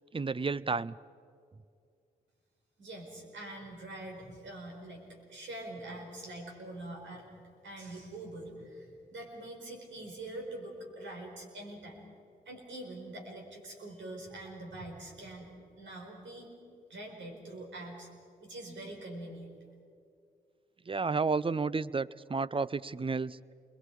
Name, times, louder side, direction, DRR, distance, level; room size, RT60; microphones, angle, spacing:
voice 1, 0.1-0.9 20.9-23.4, right 4 dB, 25° right, 19 dB, 0.6 m, -31 dB
voice 2, 2.8-7.3 7.6-12.1 12.4-15.5 15.8-16.5 16.9-18.1 18.4-19.5, right 1 dB, 75° right, 1 dB, 4.9 m, -44 dB
28.0 x 22.0 x 4.9 m, 2.3 s
supercardioid pair, 40°, 19 cm